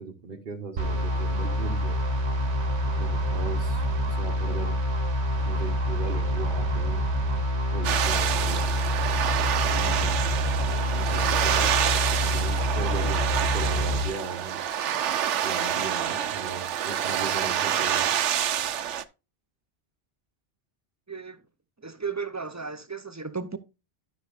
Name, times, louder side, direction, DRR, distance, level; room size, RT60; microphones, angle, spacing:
voice 1, 0.0-2.0 3.0-3.9 4.2-4.8 5.3-7.0 7.7-8.6 9.6-10.3 10.9-14.6 15.4-18.1, right 4 dB, 50° right, 1.3 m, -37 dB
sound 1, 0.8-14.1, equal, 70° right, 1.3 m, -27 dB
sound 2, 7.8-19.0, right 10 dB, 85° right, 1.0 m, -27 dB
voice 2, 21.1-21.4 21.8-23.6, right 5 dB, 25° right, 0.4 m, -34 dB
12.0 x 6.1 x 2.5 m
omnidirectional pair, 1.2 m